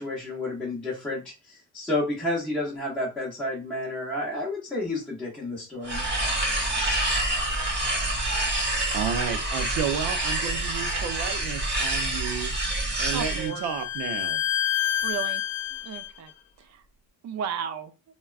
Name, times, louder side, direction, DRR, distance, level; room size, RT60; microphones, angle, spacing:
voice 1, 0.0-6.1, left 2 dB, 5° left, 0.7 m, -31 dB
sound 1, 5.8-13.5, right 1 dB, 25° right, 0.9 m, -27 dB
voice 2, 8.9-12.5 13.0-14.4, right 8 dB, 90° right, 0.6 m, -31 dB
Bowed string instrument, 12.3-16.1, left 11 dB, 60° left, 0.6 m, -29 dB
voice 3, 13.1-13.7 15.0-15.4 15.7-16.3 16.6-16.8 17.2-17.9, right 8 dB, 45° right, 0.4 m, -34 dB
3.4 x 2.2 x 2.3 m
cardioid pair, 135°, 40 cm